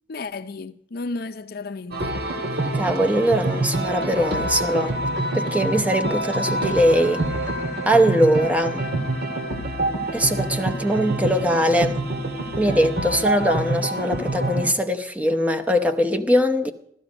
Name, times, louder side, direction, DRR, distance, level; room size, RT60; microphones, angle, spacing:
voice 1, 0.0-2.2 13.0-13.3, left 3 dB, 60° left, 0.6 m, -33 dB
sound 1, 1.9-14.7, right 1 dB, 65° right, 2.0 m, -26 dB
voice 2, 2.7-5.0 5.3-7.3 7.9-8.8 10.1-12.0 12.6-16.7, equal, 10° right, 0.8 m, -21 dB
15.5 x 13.0 x 5.1 m
head